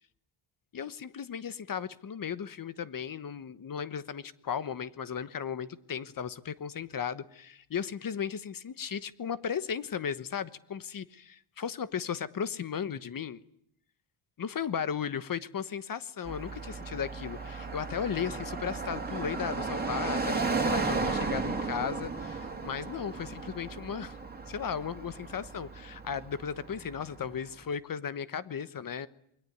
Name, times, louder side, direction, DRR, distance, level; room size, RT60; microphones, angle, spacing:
voice 1, 0.7-13.4 14.4-24.2 24.5-29.1, left 7 dB, 40° left, 14 dB, 1.2 m, -36 dB
Car passing by, 16.3-27.4, right 4 dB, 20° right, 3.7 m, -35 dB
28.0 x 21.5 x 9.3 m, 0.74 s
cardioid pair, 145°, 50 cm